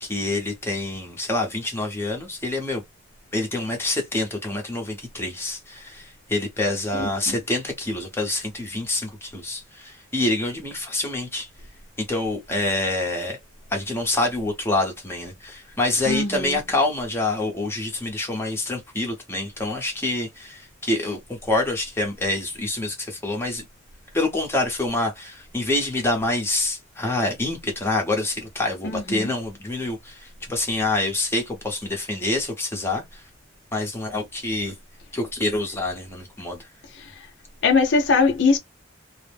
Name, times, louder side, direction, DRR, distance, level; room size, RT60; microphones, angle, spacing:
voice 1, 0.0-2.8 3.3-11.5 12.1-13.4 13.7-23.6 24.1-33.2 33.7-34.7 35.1-36.7, left 2 dB, 10° left, 0.7 m, -26 dB
voice 2, 7.0-7.3 16.1-16.5 29.1-29.3 37.6-38.6, left 4 dB, 60° left, 0.6 m, -20 dB
2.4 x 2.1 x 3.3 m
head